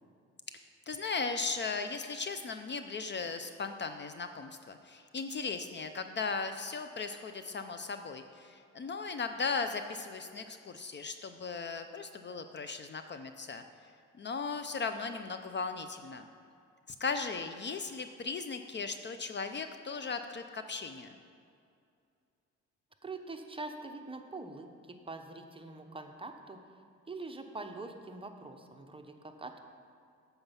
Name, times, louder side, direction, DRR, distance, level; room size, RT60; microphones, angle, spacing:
voice 1, 0.9-13.6 14.1-16.2 17.0-21.2, left 4 dB, 35° left, 8 dB, 0.5 m, -37 dB
voice 2, 23.0-29.7, right 3 dB, 20° right, 4 dB, 0.8 m, -44 dB
8.6 x 7.1 x 5.7 m, 2.4 s
cardioid pair, 90°, 30 cm